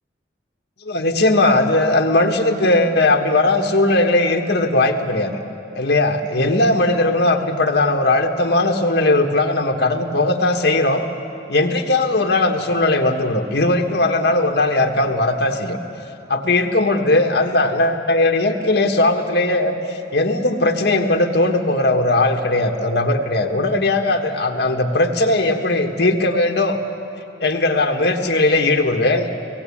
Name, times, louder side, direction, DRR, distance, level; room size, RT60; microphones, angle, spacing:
voice 1, 0.8-5.4 5.7-11.1 11.5-15.8 16.3-26.8 27.4-29.3, left 2 dB, 65° left, 3 dB, 1.4 m, -18 dB
18.0 x 17.0 x 8.5 m, 2.9 s
head